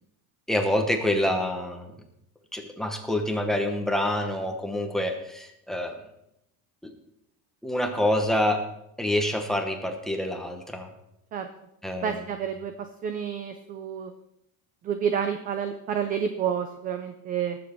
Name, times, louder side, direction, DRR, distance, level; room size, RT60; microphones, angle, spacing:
voice 1, 0.5-1.9 2.5-6.0 6.8-6.9 7.6-8.7 9.0-10.9 11.8-12.3, left 1 dB, ahead, 3 dB, 1.0 m, -27 dB
voice 2, 12.0-12.7 13.0-14.1 14.8-17.6, right 8 dB, 20° right, 8 dB, 0.4 m, -29 dB
19.0 x 7.7 x 4.5 m, 0.80 s
cardioid pair, 165°, 44 cm